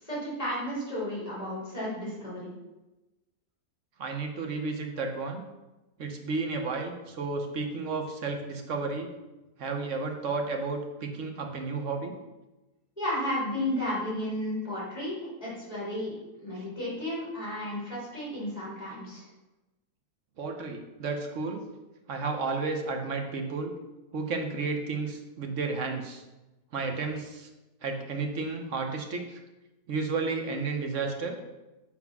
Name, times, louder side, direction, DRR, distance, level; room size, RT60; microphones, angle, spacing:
voice 1, 0.0-2.5 13.0-19.3, left 1 dB, 25° left, -7 dB, 3.0 m, -33 dB
voice 2, 4.0-5.4 6.0-9.1 9.6-12.1 16.6-16.7 20.4-21.7 22.1-23.7 24.1-26.2 26.7-27.5 27.8-29.4 29.9-31.4, right 4 dB, 55° right, 3 dB, 1.2 m, -32 dB
7.5 x 3.9 x 6.0 m, 1.0 s
omnidirectional pair, 1.6 m